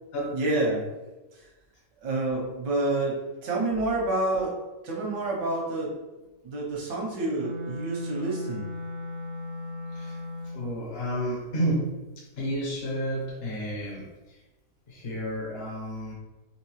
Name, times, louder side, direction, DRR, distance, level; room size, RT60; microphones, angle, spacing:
voice 1, 0.3-0.9 2.0-6.0 6.4-8.7, right 2 dB, 80° right, -3 dB, 1.6 m, -28 dB
Wind instrument woodwind instrument, 7.3-10.7, left 1 dB, 40° right, 0.6 m, -36 dB
voice 2, 10.4-14.4 14.9-16.1, equal, 45° left, -3 dB, 0.9 m, -31 dB
4.5 x 3.0 x 3.1 m, 1.1 s
omnidirectional pair, 1.9 m